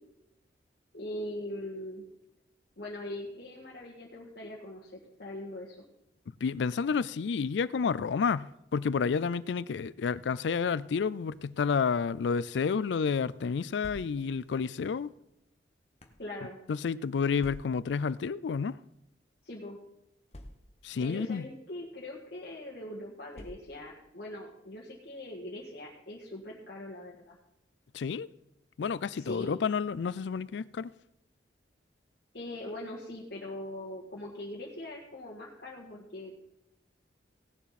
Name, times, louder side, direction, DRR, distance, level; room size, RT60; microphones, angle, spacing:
voice 1, 0.9-2.0 2.8-5.8 16.2-16.6 19.5-19.8 21.0-27.4 29.1-29.5 32.3-36.3, left 1 dB, 60° left, 1.8 m, -41 dB
voice 2, 6.4-8.5 8.7-15.1 16.7-18.8 20.8-21.4 27.9-28.3 28.8-30.9, left 5 dB, 75° left, 0.4 m, -30 dB
sound 1, 13.8-14.5 15.3-16.3 17.4-18.0 18.9-19.0 19.3-19.4 20.3-21.0 21.8-22.1 23.3-24.0, left 1 dB, 35° left, 1.1 m, -49 dB
17.5 x 7.1 x 4.2 m
head